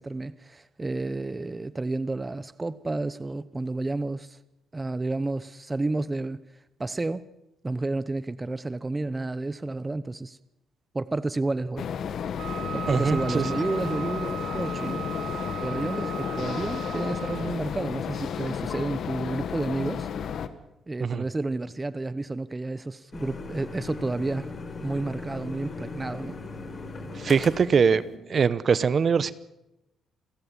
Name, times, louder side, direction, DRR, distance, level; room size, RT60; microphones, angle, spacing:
voice 1, 0.0-4.4 4.7-6.4 6.8-7.3 7.6-10.4 10.9-11.9 12.7-15.1 15.6-20.1 20.9-24.5 24.8-26.4, right 2 dB, 20° right, 0.8 m, -31 dB
sound 1, 11.8-20.5, left 8 dB, 65° left, 1.6 m, -32 dB
Wind instrument woodwind instrument, 12.4-17.6, right 9 dB, 75° right, 2.1 m, -37 dB
voice 2, 12.9-13.4 21.0-21.2 27.2-28.0 28.3-29.3, right 6 dB, 45° right, 1.0 m, -22 dB
sound 2, 23.1-28.2, left 3 dB, 40° left, 4.3 m, -38 dB
28.5 x 13.5 x 7.5 m
cardioid pair, 90°, 0 cm